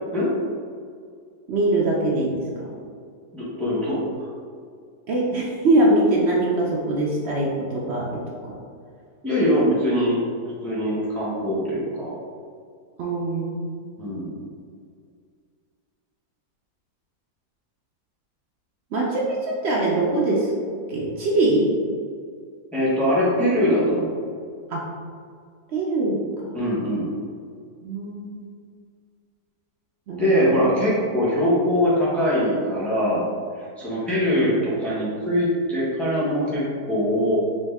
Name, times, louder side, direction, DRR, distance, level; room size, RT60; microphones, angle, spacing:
voice 1, 1.5-2.4 5.1-8.6 13.0-13.9 18.9-20.5 20.9-21.7 24.7-24.8 25.7-26.2 27.8-28.5 30.1-30.8 34.3-34.4, right 2 dB, 80° right, -4 dB, 0.6 m, -23 dB
voice 2, 3.3-4.2 9.2-12.2 14.0-14.4 22.7-24.1 26.5-27.1 30.2-33.3 33.8-37.4, equal, ahead, -9 dB, 0.8 m, -22 dB
4.2 x 2.6 x 3.4 m, 2.1 s
omnidirectional pair, 1.8 m